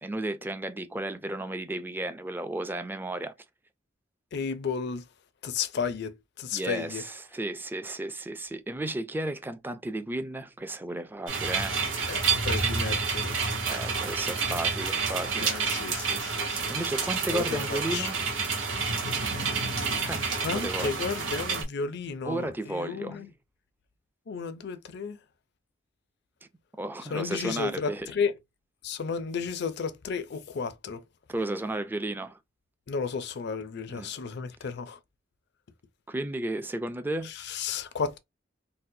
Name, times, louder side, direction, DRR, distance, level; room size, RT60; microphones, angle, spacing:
voice 1, 0.0-3.3 6.5-11.8 13.7-15.6 16.7-18.2 20.0-20.2 20.5-21.1 22.2-23.2 26.8-28.1 31.3-32.4 33.9-34.1 36.1-37.3, right 1 dB, 10° right, 0.4 m, -33 dB
voice 2, 4.3-5.1 5.4-7.0 12.1-13.4 15.4-16.7 17.3-18.1 20.3-23.3 24.3-25.2 27.1-28.3 28.8-31.0 32.9-35.0 37.2-38.2, left 5 dB, 60° left, 0.5 m, -33 dB
sound 1, 11.3-21.6, right 5 dB, 75° right, 1.0 m, -29 dB
4.0 x 2.1 x 2.6 m
head